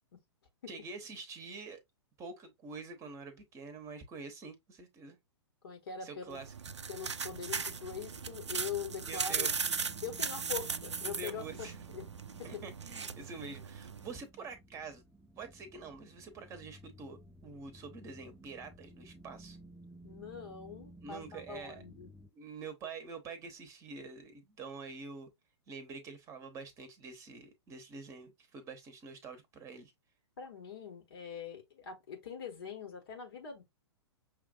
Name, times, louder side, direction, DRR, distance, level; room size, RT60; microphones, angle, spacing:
voice 1, 0.7-1.8 2.2-5.2 6.0-6.5 9.1-9.6 11.0-11.7 12.4-15.0 15.4-19.6 21.0-21.8 22.3-25.3 25.7-29.9, right 4 dB, 20° right, 1.0 m, -46 dB
voice 2, 5.6-6.4 6.9-9.5 10.0-11.7 11.9-12.1 12.4-12.5 20.0-22.1 30.4-33.6, left 7 dB, 55° left, 1.3 m, -43 dB
sound 1, 6.3-14.2, right 5 dB, 75° right, 0.4 m, -38 dB
sound 2, 7.1-22.3, right 1 dB, ahead, 0.3 m, -56 dB
6.0 x 2.5 x 2.5 m
figure-of-eight pair, 110°, 15 cm